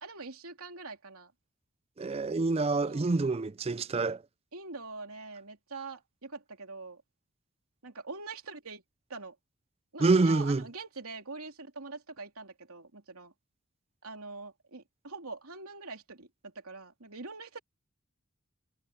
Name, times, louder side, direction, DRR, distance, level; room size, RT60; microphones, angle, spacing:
voice 1, 0.0-1.3 2.7-3.1 4.5-7.0 7.8-8.8 9.1-9.3 9.9-13.3 14.0-17.6, right 3 dB, 85° right, 3.1 m, -44 dB
voice 2, 2.0-4.2 10.0-10.6, right 3 dB, 30° right, 0.4 m, -26 dB
head